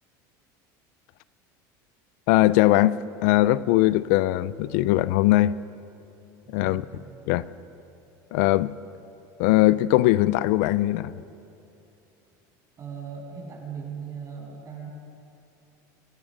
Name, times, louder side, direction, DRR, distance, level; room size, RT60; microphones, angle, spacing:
voice 1, 2.3-5.6 6.5-6.8 7.3-7.5 8.3-8.7 9.4-11.1, left 16 dB, 75° left, 0.6 m, -20 dB
voice 2, 6.4-7.0 12.8-14.9, right 6 dB, 35° right, 7.8 m, -38 dB
28.0 x 18.0 x 6.5 m
supercardioid pair, 120°, 10 cm